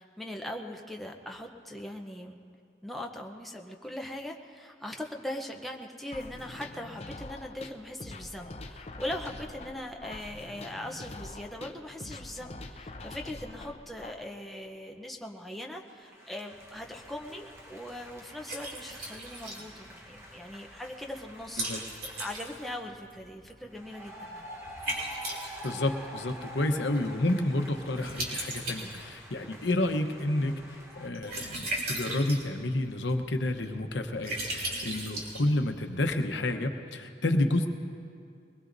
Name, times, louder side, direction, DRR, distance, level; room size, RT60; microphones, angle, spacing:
voice 1, 0.0-2.4 2.8-21.7 22.0-24.5, left 1 dB, ahead, 1 dB, 0.7 m, -40 dB
sound 1, 6.1-14.1, left 2 dB, 35° left, 0.7 m, -44 dB
sound 2, 15.7-23.0 23.7-31.1, equal, 15° right, 1.1 m, -48 dB
Liquid, 16.5-36.0, right 1 dB, 55° right, 2.8 m, -40 dB
voice 2, 25.6-37.7, left 1 dB, 85° left, 6 dB, 1.0 m, -30 dB
22.0 x 20.5 x 2.7 m, 2.3 s
head